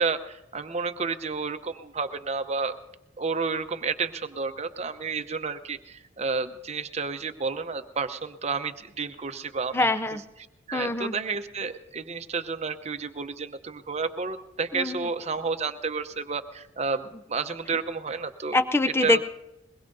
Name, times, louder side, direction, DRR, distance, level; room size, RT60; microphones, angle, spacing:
voice 1, 0.0-2.7 3.2-9.9 10.7-18.6 19.0-19.2, right 4 dB, 35° right, 8 dB, 0.8 m, -31 dB
voice 2, 9.7-10.2 10.7-11.2 14.7-15.1 18.5-19.2, left 2 dB, 15° left, 12 dB, 0.5 m, -24 dB
22.0 x 20.5 x 2.7 m, 0.91 s
head